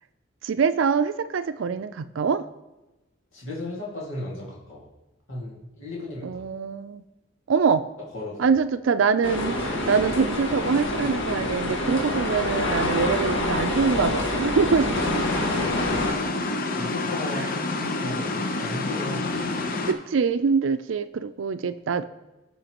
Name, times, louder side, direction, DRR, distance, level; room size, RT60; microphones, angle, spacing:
voice 1, 0.4-2.5 6.2-7.0 7.5-7.9 8.4-15.2 17.3-17.5 19.9-22.1, right 5 dB, 75° right, 12 dB, 0.4 m, -24 dB
voice 2, 3.3-4.9 5.3-6.4 8.1-8.5 16.8-19.4, left 1 dB, 90° left, -5 dB, 2.1 m, -35 dB
sound 1, 9.2-16.1, left 2 dB, 70° left, 1.7 m, -26 dB
sound 2, 14.9-19.9, left 3 dB, 45° left, 0.8 m, -28 dB
16.0 x 5.6 x 3.0 m, 1.0 s
head